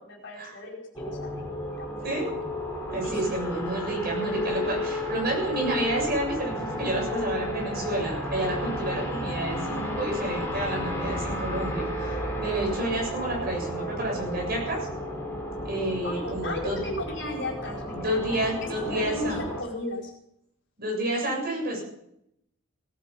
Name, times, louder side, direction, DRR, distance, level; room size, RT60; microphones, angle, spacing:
voice 1, 0.0-2.4 3.0-3.2 3.5-3.6 16.0-20.1, left 1 dB, 55° left, -1 dB, 4.8 m, -36 dB
sound 1, 0.9-19.6, left 1 dB, 10° left, 3.4 m, -33 dB
voice 2, 2.9-14.9 15.6-16.8 17.9-19.4 20.8-21.8, right 1 dB, 45° right, -1 dB, 7.4 m, -30 dB
18.0 x 12.0 x 5.6 m, 0.77 s
head